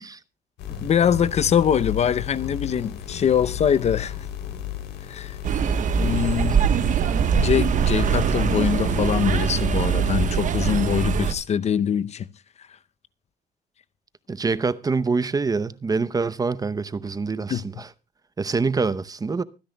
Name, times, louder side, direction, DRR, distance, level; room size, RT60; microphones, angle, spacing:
sound 1, 0.6-9.7, left 10 dB, 85° left, 3.2 m, -34 dB
voice 1, 0.8-4.1 5.1-5.4 6.0-6.6 7.3-12.3 17.5-17.6, left 8 dB, 40° left, 0.6 m, -23 dB
sound 2, 5.4-11.3, right 7 dB, 50° right, 1.2 m, -22 dB
voice 2, 14.3-17.9 18.4-19.4, right 4 dB, 20° right, 0.7 m, -25 dB
24.5 x 10.0 x 2.3 m
cardioid pair, 110°, 17 cm